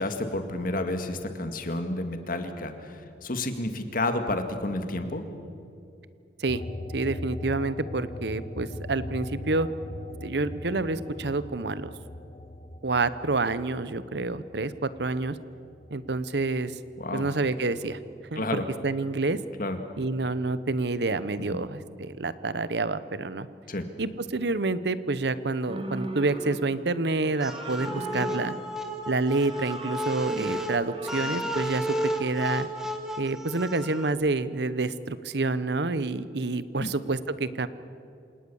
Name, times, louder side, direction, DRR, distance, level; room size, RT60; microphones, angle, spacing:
voice 1, 0.0-5.2 17.0-17.3 18.4-18.7 19.6-19.8 21.5-21.6 23.7-23.9 36.8-36.9, left 2 dB, 50° left, 7 dB, 2.0 m, -30 dB
sound 1, 6.5-17.4 17.8-19.2, left 2 dB, 35° left, 1.0 m, -41 dB
voice 2, 6.9-9.7 10.2-11.9 12.8-15.4 15.9-16.8 17.1-18.0 18.3-19.4 20.0-23.5 24.0-28.5 29.1-31.9 32.2-32.7 33.2-37.7, right 3 dB, 65° right, 15 dB, 0.9 m, -28 dB
sound 2, 25.7-26.9 27.2-28.8 29.2-31.6, right 1 dB, 30° right, 2.0 m, -39 dB
sound 3, 27.4-34.1, equal, 5° right, 1.9 m, -33 dB
28.0 x 18.5 x 7.1 m, 2.6 s
head